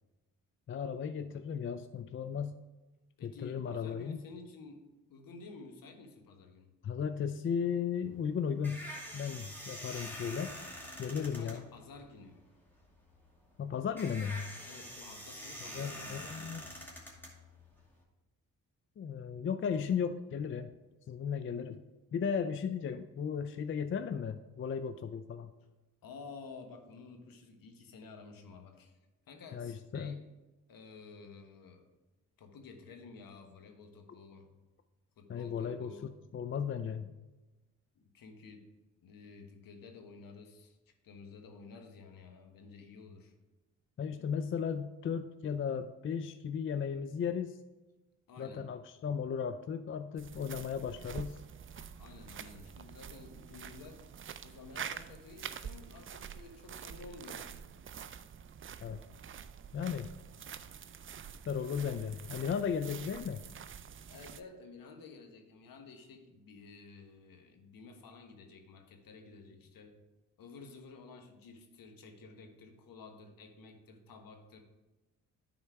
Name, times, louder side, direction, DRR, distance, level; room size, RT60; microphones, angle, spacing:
voice 1, 0.7-2.6 3.2-4.2 6.8-8.8 9.1-10.5 11.0-11.6 13.6-14.5 15.7-16.6 19.0-20.7 21.1-21.8 22.1-25.5 29.5-30.2 35.3-35.9 36.3-37.1 44.0-47.6 48.4-51.4 58.8-59.0 59.7-60.1 61.5-63.4, left 7 dB, 35° left, 10 dB, 0.4 m, -35 dB
voice 2, 3.2-6.7 11.1-12.4 14.6-16.9 26.0-28.9 29.3-30.2 30.7-31.8 32.4-34.5 35.2-36.1 37.9-38.6 39.0-40.8 41.0-43.3 48.3-48.7 52.0-54.1 54.4-57.5 64.1-70.0 70.4-74.6, left 4 dB, 65° left, 5 dB, 1.3 m, -52 dB
sound 1, 8.0-18.0, equal, 5° left, 2.2 m, -46 dB
sound 2, 50.2-64.4, right 8 dB, 35° right, 0.5 m, -47 dB
9.9 x 4.3 x 4.6 m, 1.1 s
supercardioid pair, 65°, 37 cm